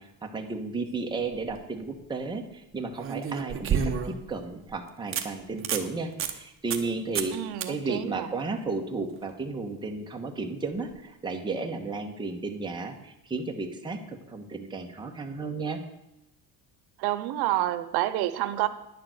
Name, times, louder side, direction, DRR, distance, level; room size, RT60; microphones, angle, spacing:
voice 1, 0.0-7.4 7.7-15.8, right 3 dB, 10° right, 2 dB, 1.2 m, -33 dB
sound 1, 1.2-1.6 3.0-4.3 4.7-4.8 5.1-5.3 5.6-5.9 6.2-6.3 6.7-6.9 7.1-7.3 7.6-7.7 10.8-10.9, right 7 dB, 35° right, 1.1 m, -29 dB
voice 2, 7.3-8.3 17.0-18.7, right 14 dB, 85° right, 12 dB, 0.9 m, -28 dB
10.5 x 6.9 x 7.9 m, 0.89 s
cardioid pair, 155°, 37 cm